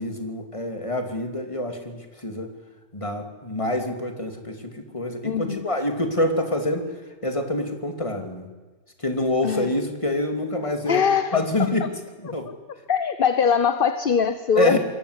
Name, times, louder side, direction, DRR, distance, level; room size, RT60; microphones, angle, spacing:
voice 1, 0.0-2.5 2.9-6.8 7.2-8.5 9.0-11.0 11.3-11.9 12.3-12.5 14.6-14.8, left 1 dB, 20° left, 5 dB, 2.9 m, -26 dB
voice 2, 5.2-5.7 9.4-9.7 10.9-11.9 12.2-12.3 12.9-14.8, left 7 dB, 40° left, 11 dB, 1.1 m, -22 dB
27.5 x 22.0 x 8.3 m, 1.3 s
omnidirectional pair, 1.7 m